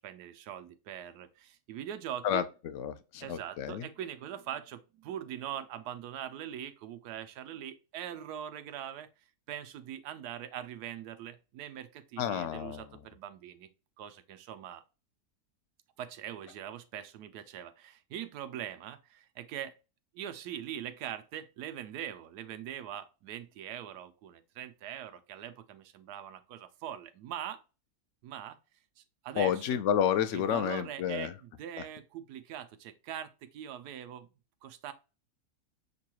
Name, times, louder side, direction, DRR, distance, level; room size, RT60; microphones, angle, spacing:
voice 1, 0.0-2.4 3.2-9.1 9.5-13.7 14.0-14.8 16.0-19.7 20.1-27.6 28.2-28.6 29.0-29.8 30.3-34.3 34.6-34.9, right 10 dB, 90° right, 1.2 m, -42 dB
voice 2, 2.2-3.9 12.2-12.9 29.4-31.3 31.8-31.9, left 9 dB, 65° left, 0.8 m, -30 dB
6.5 x 2.3 x 2.9 m
omnidirectional pair, 1.7 m